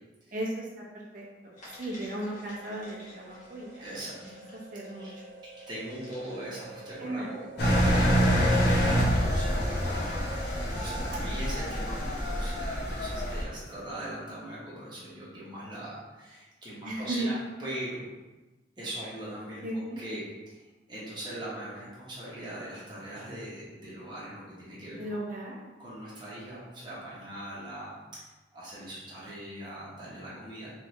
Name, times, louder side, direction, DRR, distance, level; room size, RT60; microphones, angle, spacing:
voice 1, 0.3-0.7 0.9-1.5 1.8-4.3 4.7-5.1 7.0-7.3 11.2-11.6 16.8-17.3 19.6-20.0 25.0-25.6, right 1 dB, 45° right, -4 dB, 0.9 m, -36 dB
sound 1, 1.5-11.1, right 2 dB, 40° left, 1.5 m, -47 dB
voice 2, 3.8-4.1 4.9-5.1 5.6-10.0 10.4-18.0 18.8-25.2 25.8-28.2 28.5-30.7, right 1 dB, 25° right, -8 dB, 1.2 m, -41 dB
Engine, 7.6-13.4, equal, 60° left, 0.8 m, -26 dB
3.4 x 3.3 x 3.1 m, 1.1 s
head